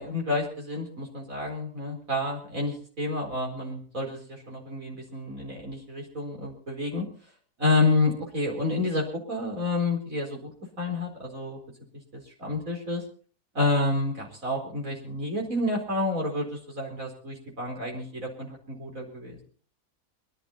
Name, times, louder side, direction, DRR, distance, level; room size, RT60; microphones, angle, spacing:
voice 1, 0.0-7.1 7.6-10.5 10.8-11.6 12.1-13.0 13.5-19.4, left 2 dB, 60° right, 0 dB, 4.8 m, -29 dB
23.5 x 12.0 x 4.3 m, 0.42 s
omnidirectional pair, 1.6 m